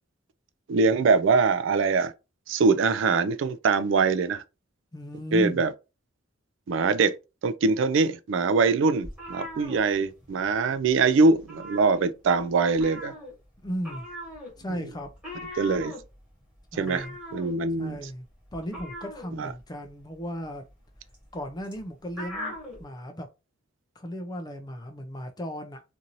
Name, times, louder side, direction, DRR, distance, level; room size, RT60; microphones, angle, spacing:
voice 1, 0.7-2.1 2.5-4.4 5.3-5.7 6.7-7.2 7.4-13.1 15.6-15.9 16.8-17.1 17.3-18.0 19.4-19.5, right 4 dB, 65° right, 0.3 m, -23 dB
voice 2, 4.9-5.6 13.6-14.1 14.6-15.1 16.7-17.2 17.8-20.6 21.3-23.3 24.0-25.8, equal, 20° left, 0.4 m, -36 dB
sound 1, 9.0-10.5 10.8-11.0 11.3-12.4 12.7-22.8, left 1 dB, 5° right, 1.3 m, -41 dB
2.6 x 2.6 x 2.9 m
head